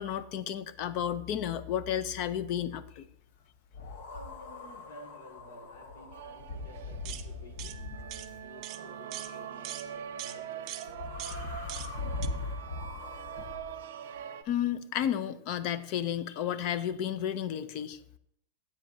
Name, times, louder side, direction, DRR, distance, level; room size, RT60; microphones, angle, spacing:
voice 1, 0.0-3.1 14.5-18.0, left 10 dB, 40° left, 14 dB, 0.5 m, -32 dB
sound 1, 3.7-8.5 10.8-13.6, left 3 dB, 65° left, 1.1 m, -40 dB
voice 2, 3.8-12.4 13.0-13.5, equal, 80° left, 2 dB, 2.2 m, -54 dB
sound 2, 6.1-14.4, right 9 dB, 75° right, 0.6 m, -43 dB
sound 3, 7.0-7.3 7.6-7.8 8.1-8.3 8.6-8.8 9.1-9.3 9.6-9.9 10.2-10.4 10.7-10.9 11.2-11.4 11.7-11.9 12.2-12.3, right 14 dB, 35° right, 0.4 m, -41 dB
10.5 x 8.7 x 2.7 m, 0.71 s
supercardioid pair, 170°, 0 cm